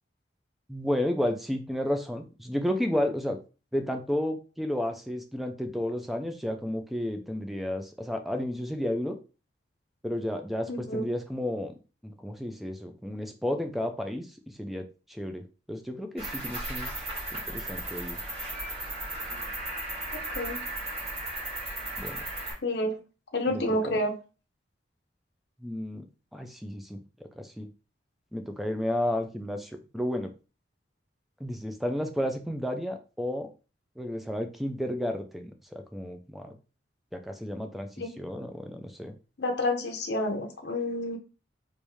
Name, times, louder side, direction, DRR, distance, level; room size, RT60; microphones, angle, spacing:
voice 1, 0.7-3.4 3.7-9.2 10.0-11.7 12.0-14.3 14.6-16.9 17.3-18.2 22.0-22.2 23.5-24.0 25.6-26.0 26.3-27.0 27.4-27.7 28.3-30.3 31.4-33.5 34.0-36.5 37.1-39.1, left 1 dB, ahead, 5 dB, 0.4 m, -32 dB
voice 2, 10.7-11.1 20.1-20.6 22.6-23.0 23.3-24.1 38.0-38.1 39.4-41.2, left 1 dB, 60° left, 3 dB, 0.6 m, -29 dB
Cricket, 16.2-22.5, right 1 dB, 35° right, 2.0 m, -35 dB
3.4 x 2.6 x 3.1 m, 0.33 s
head